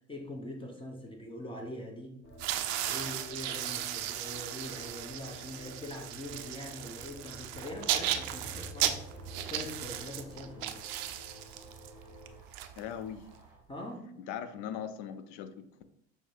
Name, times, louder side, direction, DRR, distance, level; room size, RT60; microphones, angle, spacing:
voice 1, 0.1-2.2 2.8-9.0 9.5-10.8 13.7-14.1, left 1 dB, 15° left, 1 dB, 0.8 m, -43 dB
sound 1, 2.2-12.4, left 2 dB, 30° left, 1.2 m, -53 dB
sound 2, 2.3-13.3, right 12 dB, 55° right, 0.5 m, -36 dB
Train, 5.8-13.6, right 2 dB, 5° right, 1.4 m, -52 dB
voice 2, 12.8-13.3 14.2-15.9, left 9 dB, 55° left, 10 dB, 0.6 m, -40 dB
6.2 x 2.1 x 3.3 m, 0.70 s
hypercardioid pair, 70°, 35 cm